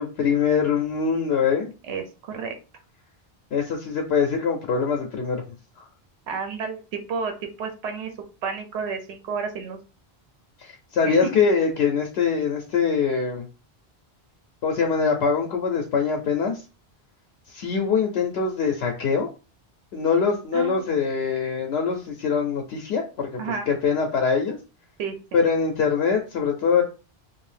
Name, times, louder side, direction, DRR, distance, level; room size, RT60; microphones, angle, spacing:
voice 1, 0.0-1.7 3.5-5.4 5.8-5.9 10.6-13.5 14.6-16.6 17.5-19.3 19.9-23.4 23.7-24.6 25.3-26.8, left 6 dB, 80° left, 2 dB, 0.8 m, -23 dB
voice 2, 1.9-2.6 6.3-7.3 7.6-8.1 8.4-9.8 11.0-11.3 20.5-20.8 23.4-23.7 25.0-25.4, right 5 dB, 90° right, 5 dB, 0.9 m, -31 dB
2.6 x 2.3 x 3.2 m, 0.32 s
omnidirectional pair, 1.1 m